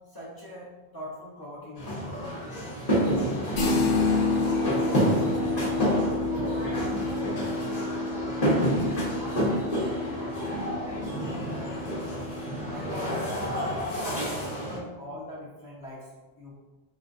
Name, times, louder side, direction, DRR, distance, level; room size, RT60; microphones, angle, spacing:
voice 1, 0.1-2.5 11.6-11.9 12.6-16.1 16.4-16.6, equal, 25° left, -7 dB, 0.7 m, -41 dB
sound 1, 1.8-14.8, equal, 40° left, 1.0 m, -29 dB
sound 2, 3.6-13.2, left 3 dB, 75° left, 1.0 m, -30 dB
voice 2, 6.3-11.3, equal, 40° right, -6 dB, 0.4 m, -41 dB
3.7 x 2.5 x 2.4 m, 1.2 s
omnidirectional pair, 1.1 m